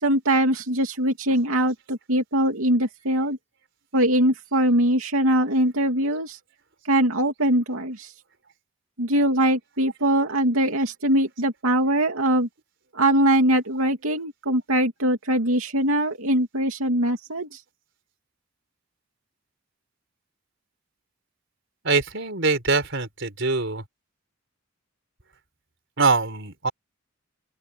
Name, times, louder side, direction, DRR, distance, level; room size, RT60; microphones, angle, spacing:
voice 1, 0.0-3.4 3.9-6.4 6.9-8.1 9.0-12.5 12.9-17.6, right 1 dB, 85° right, 2.8 m, -22 dB
voice 2, 21.8-23.8 26.0-26.7, right 4 dB, 60° right, 4.7 m, -23 dB
open air
head